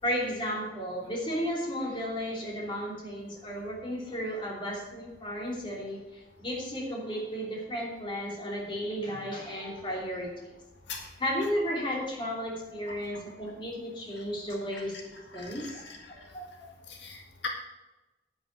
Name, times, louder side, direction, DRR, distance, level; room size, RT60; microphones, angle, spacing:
voice 1, 0.0-10.3 11.2-15.8 16.1-16.7, equal, 25° left, -2 dB, 3.1 m, -34 dB
voice 2, 15.3-16.1 16.9-17.5, left 5 dB, 80° left, 1 dB, 1.9 m, -41 dB
10.0 x 9.9 x 4.7 m, 1.1 s
head